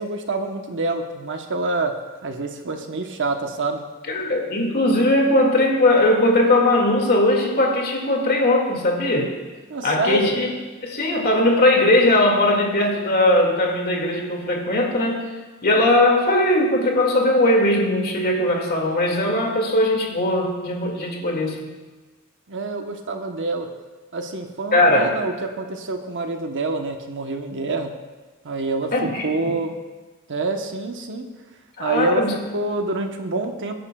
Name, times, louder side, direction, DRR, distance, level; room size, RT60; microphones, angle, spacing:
voice 1, 0.0-1.9 2.2-3.8 9.7-10.3 22.5-23.7 24.1-27.9 28.4-28.9 29.2-29.7 30.3-31.3 31.8-32.2 32.5-33.7, right 3 dB, 55° right, 5 dB, 1.0 m, -26 dB
voice 2, 4.1-9.3 9.8-10.5 10.8-15.2 15.6-21.7 24.7-25.1 28.9-29.6 31.8-32.4, left 1 dB, 45° left, 0 dB, 2.1 m, -19 dB
23.5 x 10.0 x 2.3 m, 1.3 s
head